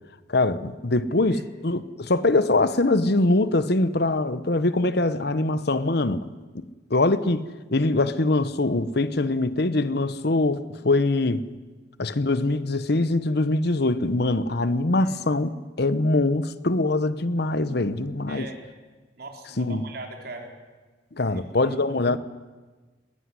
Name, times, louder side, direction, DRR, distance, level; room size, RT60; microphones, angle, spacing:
voice 1, 0.3-6.2 6.9-7.4 7.7-11.4 12.0-15.5 15.8-18.5 19.6-19.8 21.2-22.2, left 2 dB, 60° left, 1.0 m, -23 dB
voice 2, 18.3-18.6 19.2-20.5 21.3-21.8, right 2 dB, 55° right, 3.9 m, -40 dB
21.0 x 18.0 x 9.8 m
head